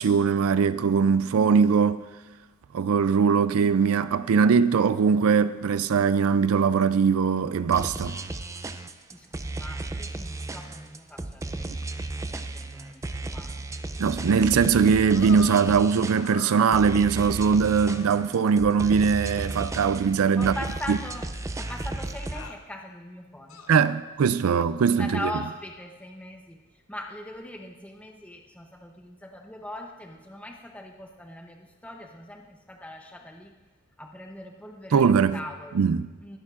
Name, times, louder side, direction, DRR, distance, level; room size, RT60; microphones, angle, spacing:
voice 1, 0.0-2.0 2.7-8.2 14.0-20.5 20.9-21.0 23.7-25.2 34.9-35.4 35.7-36.1, right 6 dB, 80° right, 0.4 m, -21 dB
sound 1, 7.7-22.5, right 2 dB, 15° right, 0.4 m, -34 dB
voice 2, 9.1-13.6 20.4-21.3 21.6-23.6 24.4-26.6 26.9-33.5 34.0-35.8 36.2-36.4, left 1 dB, 5° left, 0.7 m, -41 dB
sound 2, 15.1-15.7 16.2-17.2 17.9-18.1 19.2-19.3 20.5-21.4 22.3-22.6 23.5-24.0 24.9-25.1, left 4 dB, 80° left, 0.9 m, -43 dB
21.5 x 10.5 x 2.5 m
head